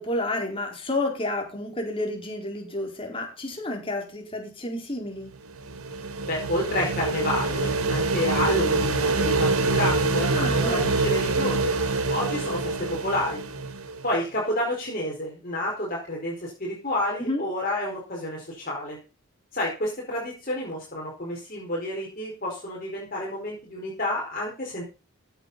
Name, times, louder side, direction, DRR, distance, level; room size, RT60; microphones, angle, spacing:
voice 1, 0.0-5.3 10.3-11.0 17.2-17.4, left 2 dB, 25° left, 2 dB, 4.6 m, -30 dB
sound 1, 5.3-14.1, right 3 dB, 75° right, 2.1 m, -25 dB
voice 2, 6.2-11.7 12.1-13.4 14.0-19.0 19.5-24.8, left 1 dB, 40° left, -3 dB, 4.8 m, -29 dB
16.0 x 9.2 x 4.2 m, 0.32 s
head